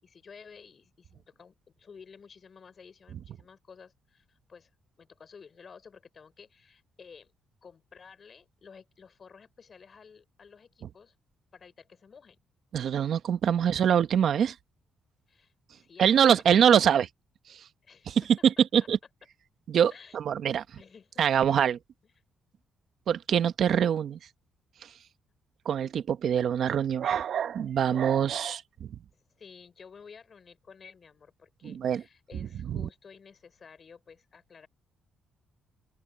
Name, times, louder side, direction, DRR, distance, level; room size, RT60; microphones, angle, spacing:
voice 1, 0.0-4.7 5.0-7.3 7.6-11.1 11.5-12.4 13.5-13.8 15.3-16.6 16.8-17.0 17.8-18.2 19.9-20.2 20.8-21.2 29.1-34.7, left 6 dB, 45° left, 6.3 m, -53 dB
voice 2, 12.7-14.5 16.0-17.1 17.5-17.6 18.1-19.0 19.7-20.6 21.2-21.8 23.1-24.2 24.8-24.9 25.6-28.9 31.6-32.0 32.4-32.9, right 8 dB, 65° right, 1.2 m, -24 dB
open air
cardioid pair, 90°, 0 cm